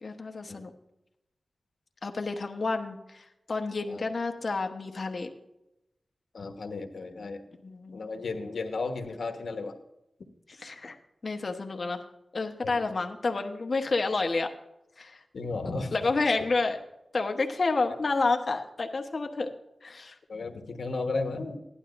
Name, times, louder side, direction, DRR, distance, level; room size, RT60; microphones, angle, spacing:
voice 1, 0.0-0.7 2.0-5.3 7.6-8.0 10.6-11.0 11.2-12.1 12.3-14.5 15.0-15.2 15.9-16.8 17.1-19.5 19.8-20.2, left 3 dB, 50° left, 4 dB, 1.1 m, -29 dB
voice 2, 6.3-7.4 7.9-9.7 12.6-12.9 15.3-15.9 16.4-16.5 20.3-21.6, left 3 dB, 85° left, 5 dB, 1.2 m, -34 dB
16.0 x 11.5 x 2.6 m, 0.90 s
wide cardioid pair, 110°, 0 cm